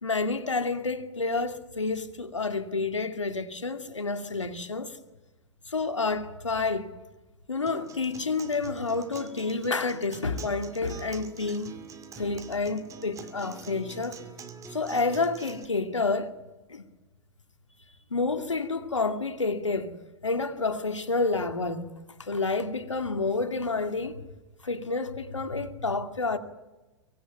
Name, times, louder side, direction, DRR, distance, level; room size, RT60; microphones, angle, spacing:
voice 1, 0.0-5.0 5.7-6.9 7.5-11.8 12.2-14.2 14.7-16.3 16.7-16.8 18.1-19.9 20.2-21.9 22.2-24.2 24.6-26.4, left 3 dB, 80° left, 2.3 m, -29 dB
Acoustic guitar, 7.7-15.6, right 5 dB, 20° right, 2.3 m, -45 dB
24.5 x 18.5 x 9.2 m
figure-of-eight pair, 105°, 15 cm